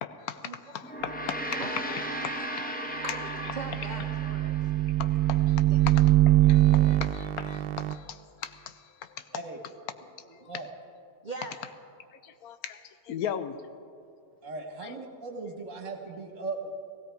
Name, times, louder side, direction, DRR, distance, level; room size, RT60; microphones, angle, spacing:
voice 1, 0.0-1.6 1.9-3.2 5.0-9.3 10.4-10.6 12.2-13.6 14.8-15.0, left 9 dB, 75° left, 11 dB, 1.1 m, -38 dB
Gong, 0.8-5.4, equal, 10° left, 0.7 m, -36 dB
voice 2, 2.8-4.9 5.7-5.8 6.8-7.0 10.3-10.5 11.2-11.5, right 2 dB, 40° right, 1 dB, 0.8 m, -41 dB
sound 1, 3.2-8.0, right 15 dB, 85° right, 1.1 m, -23 dB
voice 3, 14.4-16.7, right 3 dB, 55° right, 3 dB, 1.7 m, -38 dB
16.5 x 16.0 x 4.6 m, 2.4 s
omnidirectional pair, 1.6 m